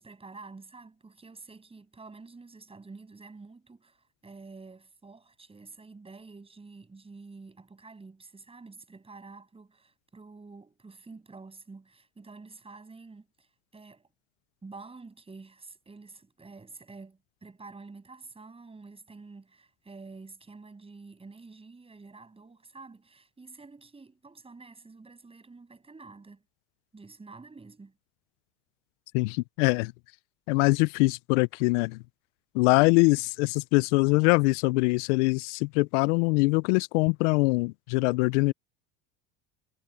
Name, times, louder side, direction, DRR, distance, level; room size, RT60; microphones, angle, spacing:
voice 1, 0.0-14.1 14.6-26.4 26.9-28.0, right 3 dB, 15° right, 7.5 m, -48 dB
voice 2, 29.1-29.9 30.5-32.0 32.5-38.5, left 26 dB, 80° left, 0.5 m, -23 dB
supercardioid pair, 110°, 35 cm